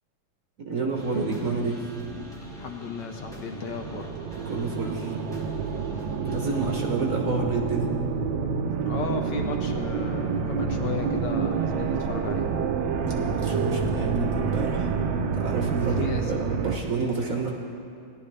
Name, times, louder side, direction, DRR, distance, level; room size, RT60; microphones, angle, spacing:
voice 1, 0.7-1.8 4.4-5.1 6.2-8.0 13.0-14.9 15.3-17.5, right 4 dB, 50° right, 0 dB, 1.2 m, -29 dB
sound 1, 0.9-6.9, equal, ahead, 0.9 m, -41 dB
voice 2, 2.6-4.1 5.9-6.1 8.9-12.5 16.0-16.4, left 5 dB, 70° left, 4 dB, 1.1 m, -35 dB
sound 2, 3.2-16.8, right 5 dB, 70° right, 1.3 m, -28 dB
17.5 x 11.0 x 3.3 m, 2.4 s
omnidirectional pair, 2.4 m